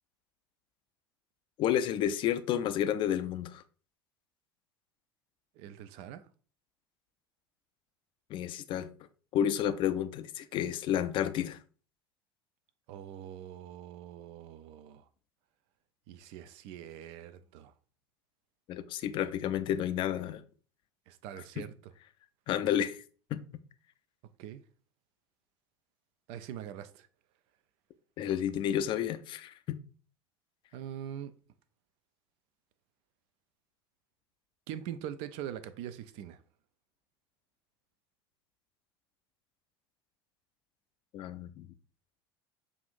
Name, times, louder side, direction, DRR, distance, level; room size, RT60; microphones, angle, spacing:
voice 1, 1.6-3.6 8.3-8.9 9.3-11.6 18.7-20.4 21.6-21.7 22.5-23.0 23.3-23.4 28.2-29.8 41.1-41.7, left 10 dB, 40° left, 0.4 m, -31 dB
voice 2, 5.6-6.2 12.9-15.0 16.1-17.7 21.1-21.7 24.4-24.6 26.3-27.1 30.7-31.3 34.7-36.4, right 10 dB, 50° right, 0.5 m, -43 dB
6.9 x 2.5 x 2.5 m
figure-of-eight pair, 70°, 13 cm